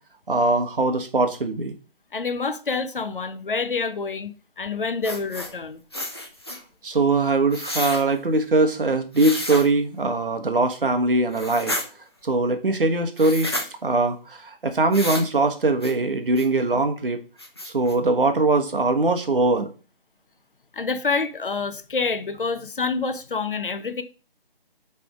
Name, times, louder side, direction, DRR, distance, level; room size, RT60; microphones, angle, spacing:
voice 1, 0.3-1.7 6.8-11.8 12.2-13.5 13.8-17.2 17.6-19.7, right 2 dB, 60° right, 1.1 m, -21 dB
voice 2, 2.1-5.8 20.7-24.0, left 4 dB, 60° left, 0.8 m, -27 dB
sound 1, 5.0-5.5 5.9-6.6 7.5-8.0 9.1-9.7 11.3-11.9 13.2-13.7 14.9-15.3 15.8-15.9 16.3-16.5 17.0-17.1 17.4-17.9, left 1 dB, 25° left, 0.5 m, -31 dB
6.0 x 3.4 x 4.9 m
figure-of-eight pair, 160°, 30 cm